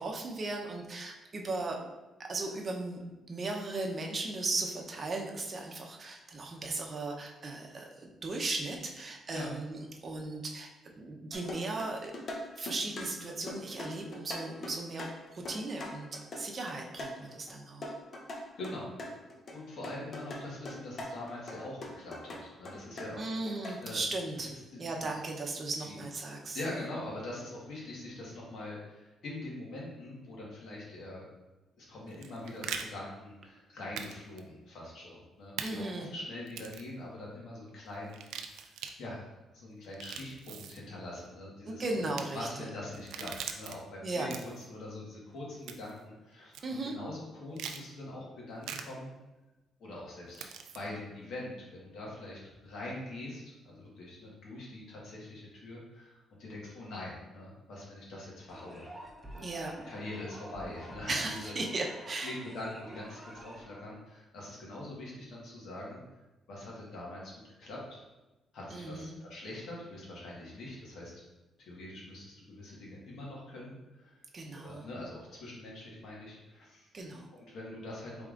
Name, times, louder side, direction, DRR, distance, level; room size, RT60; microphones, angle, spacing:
voice 1, 0.0-1.8 2.2-3.0 3.3-10.7 11.0-12.1 12.6-15.1 15.3-16.1 16.3-17.9 23.2-24.5 24.8-26.6 35.6-36.1 41.7-42.7 44.0-44.3 46.6-46.9 59.4-59.7 61.1-62.3 68.7-69.1 74.3-74.9 76.9-77.3, right 2 dB, 40° right, 1 dB, 0.7 m, -36 dB
sound 1, 11.3-17.5 17.8-19.6 19.8-23.8, left 1 dB, 45° left, 0.7 m, -42 dB
voice 2, 18.3-18.9 19.5-23.3 23.8-24.0 24.4-25.1 25.8-26.0 26.5-31.2 31.8-38.6 39.0-42.1 42.3-44.3 44.7-46.5 46.8-49.1 49.8-50.5 50.7-58.9 59.3-61.5 62.2-66.0 66.5-67.3 67.6-68.0 68.5-71.2 71.6-74.2 74.5-76.9 77.3-78.2, left 1 dB, 70° left, -4 dB, 1.4 m, -43 dB
sound 2, 32.1-32.8 34.0-34.1 34.4-34.5 35.6-35.7 36.5-36.9 38.1-38.9 39.8-40.8 42.0-42.2 42.9-43.7 44.2-44.7 45.7-46.0 46.5-46.6 47.6-47.8 48.6-48.8 50.3-50.8, right 7 dB, 85° right, 0.3 m, -41 dB
sound 3, 58.5-63.8, equal, 10° right, 0.8 m, -49 dB
4.8 x 3.4 x 2.5 m, 1.1 s
cardioid pair, 90°, 0 cm